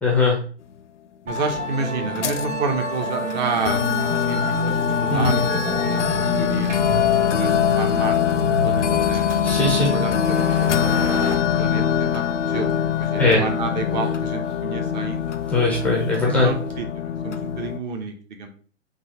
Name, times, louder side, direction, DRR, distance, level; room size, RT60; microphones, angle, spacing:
voice 1, 0.0-0.4 5.1-5.4 9.4-9.9 13.2-13.4 15.5-16.5, left 3 dB, 5° left, -2 dB, 0.4 m, -20 dB
voice 2, 1.2-3.9 4.3-7.1 7.4-9.3 9.7-11.2 11.5-15.2 16.4-18.5, right 5 dB, 40° right, 6 dB, 0.8 m, -30 dB
Musical instrument, 1.3-16.8, equal, 85° right, 1.1 m, -30 dB
sound 1, 1.4-1.5 2.2-2.5 3.3-3.4 3.7-17.8, left 8 dB, 75° left, 0.6 m, -23 dB
sound 2, 3.8-11.4, right 1 dB, 60° right, 2.0 m, -36 dB
3.9 x 2.8 x 4.3 m, 0.42 s
figure-of-eight pair, 120°, 36 cm